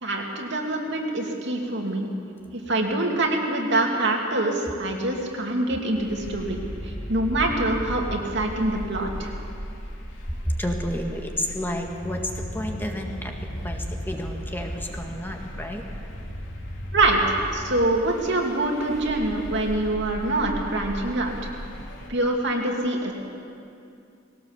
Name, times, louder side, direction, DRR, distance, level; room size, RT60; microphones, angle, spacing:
voice 1, 0.0-2.1 2.5-6.6 6.8-9.3 16.9-21.3 22.1-23.1, right 2 dB, 60° right, 0 dB, 2.8 m, -25 dB
sound 1, 5.9-22.1, equal, 65° left, 3.4 m, -36 dB
voice 2, 10.3-13.3 13.6-15.8, equal, 10° left, 1 dB, 1.7 m, -31 dB
21.0 x 18.0 x 7.3 m, 2.5 s
head